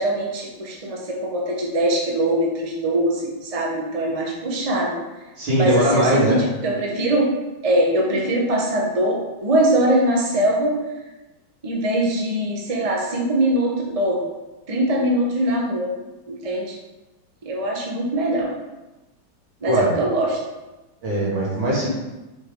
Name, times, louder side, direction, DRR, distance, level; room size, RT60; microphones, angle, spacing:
voice 1, 0.0-5.0 5.6-7.3 7.6-10.7 11.6-14.2 14.7-15.9 16.3-16.8 17.4-18.5 19.6-20.4, right 1 dB, 20° right, -2 dB, 1.2 m, -22 dB
voice 2, 5.4-6.4 19.7-19.9 21.0-21.9, right 1 dB, 80° right, -6 dB, 3.4 m, -20 dB
7.2 x 6.4 x 4.0 m, 1.1 s
omnidirectional pair, 2.2 m